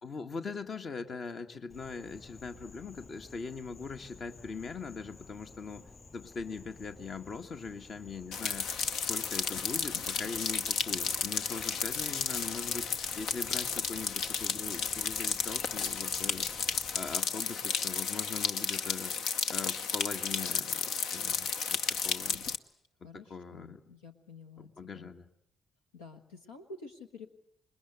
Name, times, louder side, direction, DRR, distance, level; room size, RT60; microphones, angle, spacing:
voice 1, 0.0-8.7 9.1-16.5 16.9-19.1 19.5-22.4 23.1-23.8 24.8-25.3, left 5 dB, 50° left, 7 dB, 1.7 m, -41 dB
Insect, 1.7-17.1, left 3 dB, 30° left, 7.1 m, -53 dB
sound 1, 8.3-22.6, left 6 dB, 65° left, 0.9 m, -33 dB
voice 2, 23.0-25.1 25.9-27.3, left 3 dB, 85° left, 5 dB, 1.5 m, -49 dB
27.5 x 21.5 x 8.1 m, 0.72 s
figure-of-eight pair, 40°, 0 cm